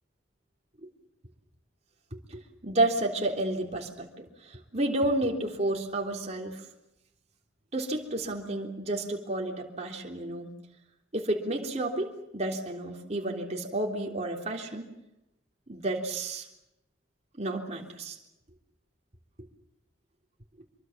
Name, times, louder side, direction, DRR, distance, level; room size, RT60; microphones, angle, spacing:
voice 1, 2.3-6.6 7.7-10.5 11.1-14.9 15.7-16.5 17.3-18.2, right 1 dB, 35° right, 1 dB, 3.5 m, -31 dB
26.0 x 23.5 x 7.4 m, 0.89 s
head